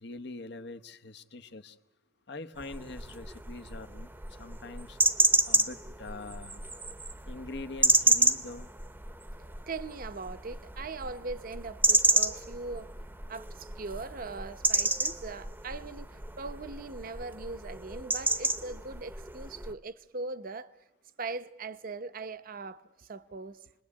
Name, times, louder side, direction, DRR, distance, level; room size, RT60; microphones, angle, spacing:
voice 1, 0.0-1.8 2.3-4.1 4.4-5.0 5.5-6.6 7.2-8.7, left 2 dB, 65° left, 1.1 m, -43 dB
sound 1, 2.6-19.7, right 2 dB, 10° right, 0.8 m, -30 dB
voice 2, 9.4-12.9 13.3-16.1 16.4-20.7 21.2-23.6, right 3 dB, 50° right, 0.8 m, -40 dB
28.5 x 20.5 x 8.5 m
head